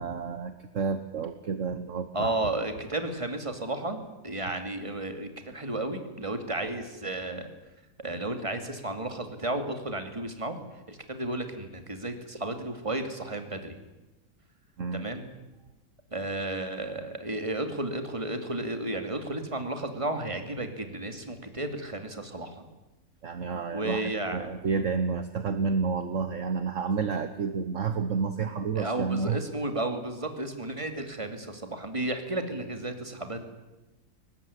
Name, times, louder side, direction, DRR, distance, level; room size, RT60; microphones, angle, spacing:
voice 1, 0.0-2.3 14.8-15.0 23.2-29.4, right 5 dB, 55° right, 10 dB, 1.4 m, -30 dB
voice 2, 2.1-7.5 8.0-10.6 10.9-13.8 14.9-15.2 16.1-22.7 23.7-24.8 28.8-33.4, right 2 dB, 20° right, 7 dB, 2.6 m, -33 dB
22.0 x 19.5 x 9.9 m, 1.1 s
omnidirectional pair, 1.7 m